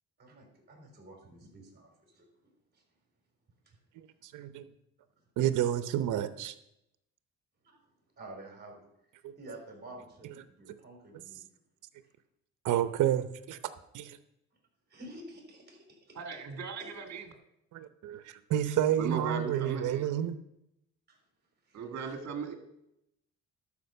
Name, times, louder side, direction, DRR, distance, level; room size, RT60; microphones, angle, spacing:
voice 1, 0.2-2.3 3.7-3.8 8.2-8.9 9.4-11.4 14.9-16.2 16.8-16.9 19.6-19.8 21.1-21.2 21.7-21.8 22.0-22.1, right 1 dB, 35° right, 1 dB, 4.0 m, -49 dB
voice 2, 4.2-4.6 5.4-6.5 9.2-9.3 12.6-13.6 13.9-14.2 17.7-20.4, right 11 dB, 80° right, 11 dB, 0.8 m, -30 dB
voice 3, 16.1-17.3 19.0-20.1 21.7-22.5, right 5 dB, 60° right, 4 dB, 1.8 m, -37 dB
12.0 x 5.2 x 6.9 m, 0.82 s
cardioid pair, 90°, 30 cm